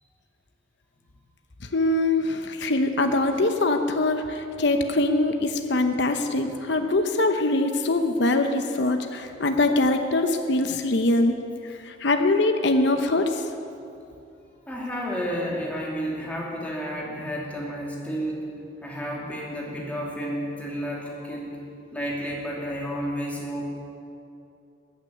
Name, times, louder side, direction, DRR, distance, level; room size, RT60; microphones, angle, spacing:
voice 1, 1.7-11.3 11.9-13.4, left 2 dB, 65° left, 6 dB, 0.9 m, -23 dB
voice 2, 14.7-18.5 18.8-21.6 21.9-23.6, equal, 10° left, -3 dB, 2.8 m, -31 dB
14.0 x 9.4 x 9.2 m, 2.7 s
head